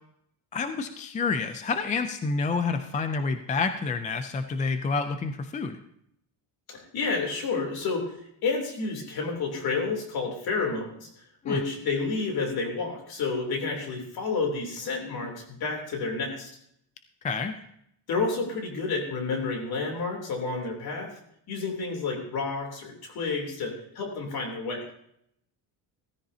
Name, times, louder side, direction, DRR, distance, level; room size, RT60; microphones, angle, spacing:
voice 1, 0.5-5.8 11.5-11.6 17.2-17.5, left 4 dB, 20° left, 8 dB, 0.4 m, -28 dB
voice 2, 6.7-8.2 8.4-11.1 11.4-16.5 18.1-21.1 21.5-24.8, left 4 dB, 50° left, 2 dB, 3.3 m, -30 dB
16.0 x 14.0 x 2.8 m, 0.74 s
cardioid pair, 180°, 46 cm